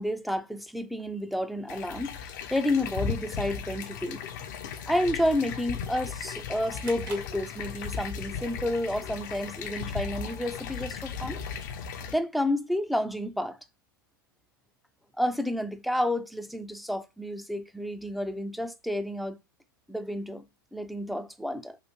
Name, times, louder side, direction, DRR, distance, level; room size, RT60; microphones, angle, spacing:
voice 1, 0.0-2.2 2.5-4.2 4.9-11.4 12.1-13.6 15.2-19.4 19.9-20.4 20.7-21.8, left 1 dB, ahead, 0.4 m, -30 dB
sound 1, 1.7-12.1, left 7 dB, 50° left, 0.6 m, -36 dB
sound 2, 6.8-8.2, right 7 dB, 65° right, 1.0 m, -48 dB
3.1 x 2.6 x 4.3 m
figure-of-eight pair, 95°, 12 cm